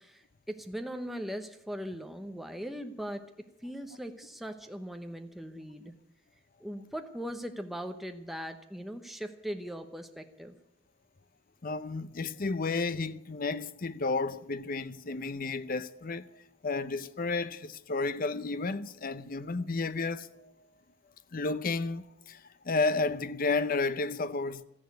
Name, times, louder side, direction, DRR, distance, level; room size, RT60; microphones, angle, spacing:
voice 1, 0.0-5.9 6.6-10.5, equal, ahead, 0.9 m, -40 dB
voice 2, 11.6-20.5 21.3-24.6, left 3 dB, 45° left, 0.7 m, -32 dB
13.5 x 10.5 x 9.4 m
head